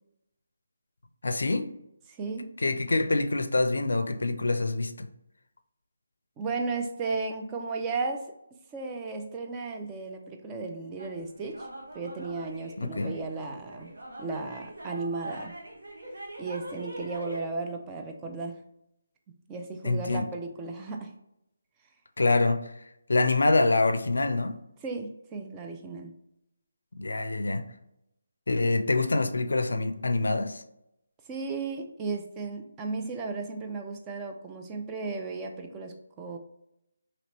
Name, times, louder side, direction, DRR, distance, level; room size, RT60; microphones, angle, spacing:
voice 1, 1.2-1.7 2.6-5.1 12.8-13.1 19.8-20.2 22.2-22.7 23.1-24.6 27.0-27.6 28.5-30.6, left 2 dB, 80° left, 0.4 m, -25 dB
voice 2, 2.1-2.5 6.4-8.3 8.7-11.7 11.9-13.9 14.2-15.5 16.4-18.5 19.5-21.1 24.8-26.1 31.3-36.4, right 4 dB, 15° right, 0.3 m, -35 dB
sound 1, 11.0-17.4, right 1 dB, 80° right, 0.9 m, -42 dB
3.0 x 2.9 x 2.9 m
figure-of-eight pair, 160°, 0 cm